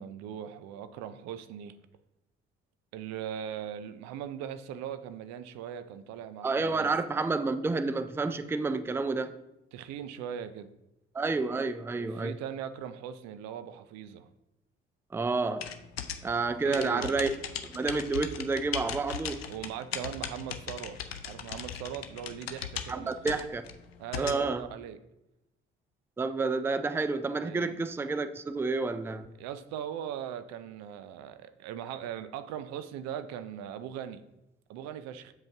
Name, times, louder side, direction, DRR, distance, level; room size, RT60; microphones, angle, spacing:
voice 1, 0.0-1.8 2.9-6.9 9.7-10.7 12.0-14.3 16.6-17.1 19.4-21.0 21.2-23.1 24.0-25.0 27.4-27.8 29.4-34.2 34.7-35.3, right 9 dB, 60° right, 0.6 m, -39 dB
voice 2, 6.4-9.4 11.1-12.4 15.1-15.7 16.2-17.3 17.6-19.5 22.9-23.6 24.2-24.6 26.2-29.3, right 3 dB, 10° right, 0.4 m, -30 dB
sound 1, 15.6-24.4, left 8 dB, 85° left, 0.5 m, -38 dB
7.4 x 5.1 x 3.5 m
figure-of-eight pair, 45°, 30 cm